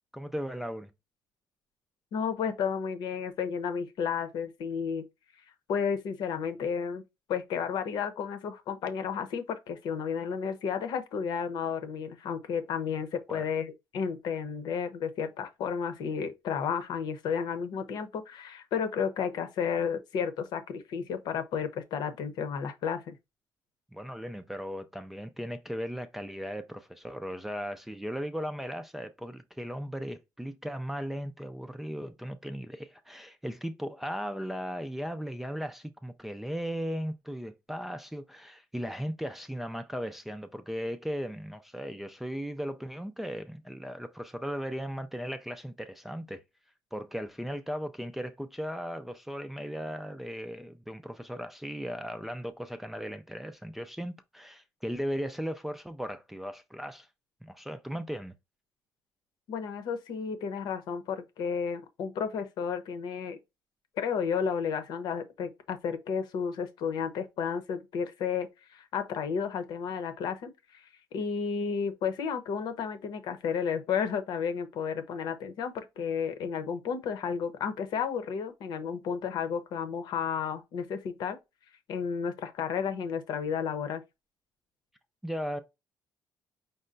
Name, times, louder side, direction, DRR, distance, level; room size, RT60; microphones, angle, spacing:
voice 1, 0.1-0.9 13.3-13.5 23.9-46.4 46.9-57.1 57.4-58.3 85.2-85.6, equal, 5° right, 0.4 m, -37 dB
voice 2, 2.1-5.0 5.7-7.0 7.3-23.2 59.5-63.4 64.0-70.8 71.1-81.4 81.9-84.0, left 6 dB, 70° left, 0.9 m, -32 dB
5.4 x 2.1 x 3.8 m
cardioid pair, 155°, 8 cm